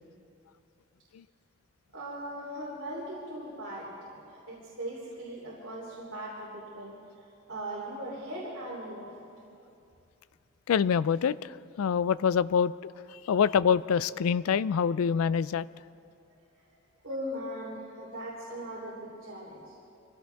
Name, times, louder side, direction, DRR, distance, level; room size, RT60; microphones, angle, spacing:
voice 1, 1.9-7.0 7.5-9.2 17.0-19.7, right 1 dB, 70° right, -6 dB, 3.2 m, -39 dB
voice 2, 10.7-12.7 13.1-15.7, left 7 dB, 90° left, 18 dB, 0.4 m, -26 dB
25.0 x 16.5 x 3.5 m, 2.5 s
head